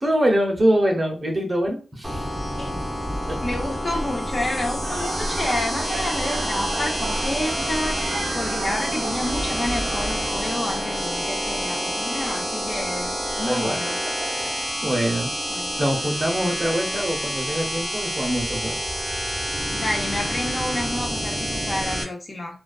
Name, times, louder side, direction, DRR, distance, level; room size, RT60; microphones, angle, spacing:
voice 1, 0.0-2.2 13.4-13.8 14.3-15.3 15.8-18.8, equal, 40° right, 0.7 m, -24 dB
sound 1, 2.0-22.0, equal, 5° right, 0.7 m, -28 dB
voice 2, 3.4-14.0 15.5-15.7 19.7-22.6, left 1 dB, 40° left, 0.8 m, -29 dB
sound 2, 4.8-14.8, right 3 dB, 90° right, 0.4 m, -35 dB
2.4 x 2.3 x 2.3 m
cardioid pair, 60°, 0 cm